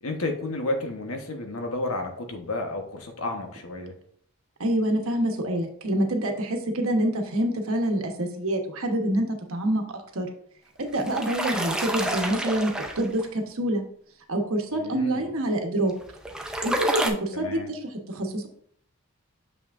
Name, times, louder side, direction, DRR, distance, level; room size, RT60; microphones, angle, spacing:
voice 1, 0.0-3.9 14.7-15.3 17.3-17.7, left 2 dB, 75° left, 3 dB, 1.2 m, -31 dB
voice 2, 4.6-10.3 10.8-13.8 14.3-15.9 16.6-18.5, right 1 dB, 75° right, 3 dB, 1.2 m, -26 dB
sound 1, 10.8-13.3 15.9-17.1, right 1 dB, 5° right, 0.5 m, -29 dB
6.9 x 5.9 x 2.6 m, 0.63 s
head